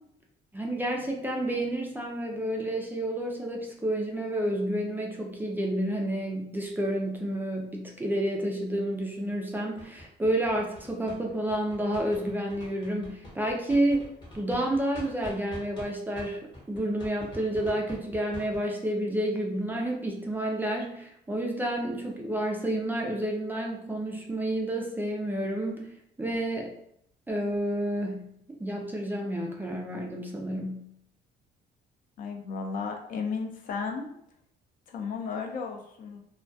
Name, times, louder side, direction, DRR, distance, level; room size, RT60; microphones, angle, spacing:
voice 1, 0.5-14.0 14.3-25.9 26.2-26.7 27.3-30.9, right 1 dB, 10° right, 0 dB, 0.3 m, -30 dB
sound 1, 9.8-15.9 16.2-18.6, left 1 dB, 25° left, 0.8 m, -45 dB
voice 2, 32.2-34.1 34.9-36.2, left 5 dB, 55° left, 3 dB, 0.4 m, -34 dB
2.2 x 2.2 x 2.6 m, 0.72 s
cardioid pair, 110°, 17 cm